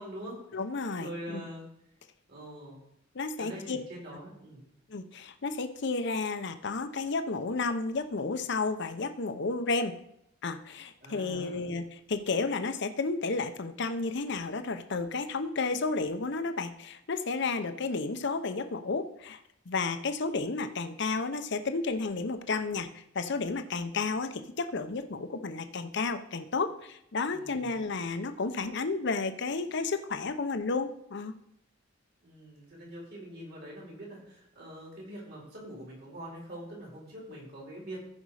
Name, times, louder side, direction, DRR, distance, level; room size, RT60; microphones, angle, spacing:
voice 1, 0.0-0.3 1.0-1.7 2.3-2.8 3.4-4.6 11.0-11.6 27.3-27.8 32.2-38.0, right 1 dB, 55° right, -3 dB, 4.4 m, -44 dB
voice 2, 0.5-1.4 3.1-3.8 4.9-9.9 10.4-19.4 19.7-31.4, left 3 dB, 65° left, 8 dB, 0.8 m, -32 dB
14.5 x 5.3 x 4.9 m, 0.76 s
head